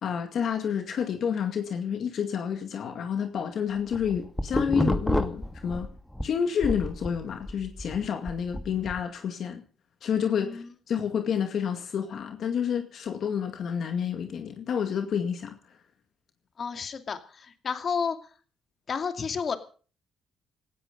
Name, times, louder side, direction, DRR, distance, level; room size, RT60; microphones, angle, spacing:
voice 1, 0.0-5.9 6.2-9.6 10.0-15.6, left 7 dB, 65° left, 2.2 m, -29 dB
sound 1, 3.8-6.3 6.6-9.0, left 1 dB, 5° left, 2.0 m, -29 dB
voice 2, 16.6-18.2 18.9-19.6, left 6 dB, 45° left, 2.5 m, -31 dB
18.0 x 13.5 x 5.3 m
cardioid pair, 90°, 0 cm